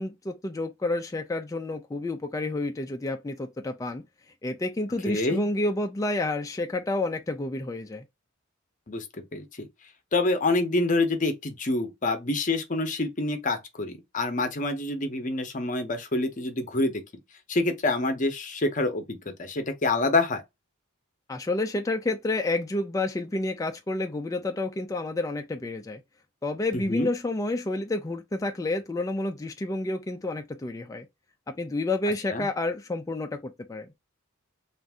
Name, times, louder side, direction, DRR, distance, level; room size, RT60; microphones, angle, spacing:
voice 1, 0.0-4.0 4.4-8.0 21.3-26.0 26.4-31.1 31.5-33.9, left 2 dB, 15° left, 0.3 m, -29 dB
voice 2, 5.1-5.5 8.9-9.7 10.1-17.0 17.5-20.4 26.7-27.1 32.3-32.5, left 2 dB, 40° left, 0.7 m, -27 dB
2.6 x 2.5 x 3.4 m
head